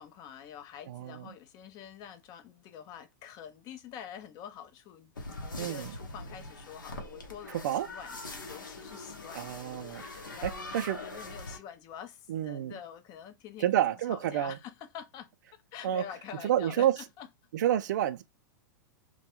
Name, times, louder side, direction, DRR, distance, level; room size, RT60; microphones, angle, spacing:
voice 1, 0.0-13.7 14.1-17.3, left 9 dB, 40° left, 0.5 m, -47 dB
voice 2, 0.9-1.2 5.6-5.9 7.6-7.9 9.3-11.0 12.3-12.8 13.6-14.5 15.8-16.0 16.4-16.9 17.5-18.2, right 11 dB, 65° right, 0.4 m, -29 dB
sound 1, 5.1-11.6, left 2 dB, 85° left, 0.8 m, -42 dB
2.2 x 2.2 x 2.8 m
hypercardioid pair, 105°, 10 cm